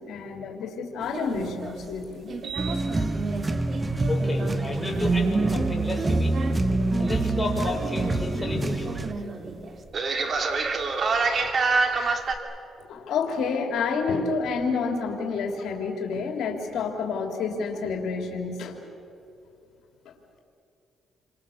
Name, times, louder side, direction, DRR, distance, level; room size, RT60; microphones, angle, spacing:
voice 1, 0.0-2.3 12.9-18.8, left 5 dB, 75° left, 2 dB, 3.1 m, -29 dB
sound 1, 1.0-12.4, right 4 dB, 50° right, 2.7 m, -30 dB
sound 2, 2.6-9.1, right 2 dB, 20° right, 1.3 m, -26 dB
voice 2, 4.1-6.3 7.0-9.1, left 2 dB, 15° left, -1 dB, 6.2 m, -31 dB
29.0 x 25.5 x 7.2 m, 2.8 s
cardioid pair, 90°, 0 cm